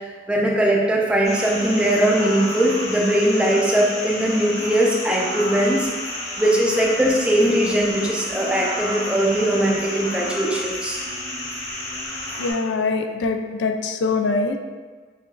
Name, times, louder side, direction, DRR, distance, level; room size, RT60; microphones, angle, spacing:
voice 1, 0.3-5.9 6.4-11.0, right 1 dB, 5° right, -3 dB, 0.4 m, -20 dB
sound 1, 1.2-12.5, left 1 dB, 40° left, 1.0 m, -31 dB
voice 2, 12.4-14.6, left 3 dB, 75° left, 5 dB, 0.3 m, -23 dB
5.5 x 2.4 x 2.3 m, 1.4 s
head